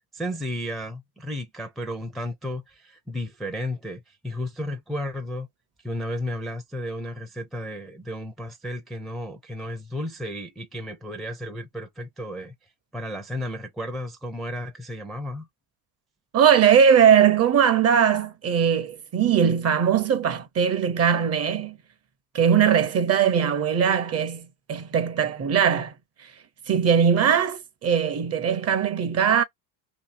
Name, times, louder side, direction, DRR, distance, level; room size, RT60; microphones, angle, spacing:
voice 1, 0.1-5.5 5.8-12.5 12.9-15.5, left 1 dB, ahead, 0.5 m, -33 dB
voice 2, 16.3-21.8 22.3-25.9 26.2-26.3 26.7-29.4, right 8 dB, 35° right, 0.7 m, -20 dB
2.9 x 2.6 x 4.1 m
supercardioid pair, 120°, 46 cm